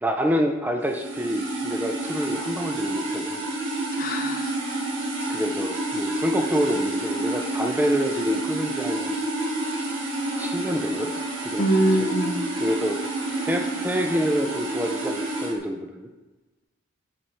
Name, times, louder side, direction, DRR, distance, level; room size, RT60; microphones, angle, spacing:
voice 1, 0.0-3.4 5.3-9.2 9.7-10.1 10.4-11.1 11.4-12.1 12.6-13.0 13.4-16.1, equal, 10° right, 3 dB, 0.3 m, -27 dB
sound 1, 0.8-15.5, right 2 dB, 60° right, 1.2 m, -29 dB
voice 2, 4.0-4.5 11.6-12.5, right 1 dB, 40° left, 4 dB, 0.7 m, -23 dB
5.3 x 4.3 x 4.4 m, 1.1 s
head